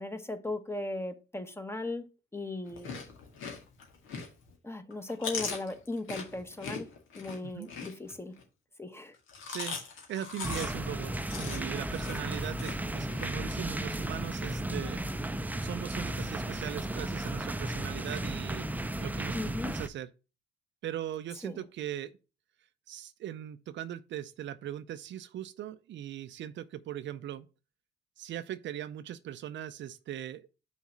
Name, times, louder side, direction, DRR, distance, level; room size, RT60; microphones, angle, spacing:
voice 1, 0.0-2.1 2.3-2.9 4.6-6.9 7.1-8.4 8.8-9.2 19.3-19.8 21.4-21.6, left 2 dB, 10° left, 1.0 m, -37 dB
Chewing mastication, 2.7-4.5 4.9-8.4 9.1-13.3, left 5 dB, 80° left, 2.1 m, -40 dB
voice 2, 9.5-9.8 10.1-15.0 15.6-18.7 19.0-20.1 20.8-22.2 22.9-27.5 28.2-30.5, right 11 dB, 65° right, 0.5 m, -39 dB
sound 1, 10.4-19.9, right 1 dB, 10° right, 0.5 m, -34 dB
5.6 x 4.2 x 6.0 m
cardioid pair, 90°, 20 cm